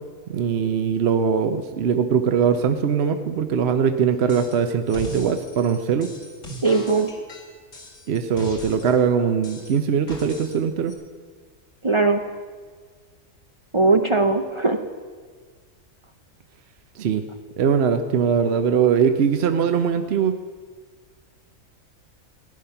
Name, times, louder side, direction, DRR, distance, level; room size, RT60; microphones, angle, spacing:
voice 1, 0.3-6.1 8.1-10.9 17.0-17.2 17.6-20.3, right 7 dB, 55° right, 7 dB, 0.9 m, -21 dB
sound 1, 4.3-4.6 4.9-9.0 9.4-10.6 10.9-11.0, equal, 70° left, 2.6 m, -39 dB
voice 2, 6.6-7.1 11.8-12.2 13.7-14.8, right 3 dB, 35° right, 5 dB, 0.5 m, -19 dB
15.5 x 10.5 x 5.7 m, 1.5 s
omnidirectional pair, 1.4 m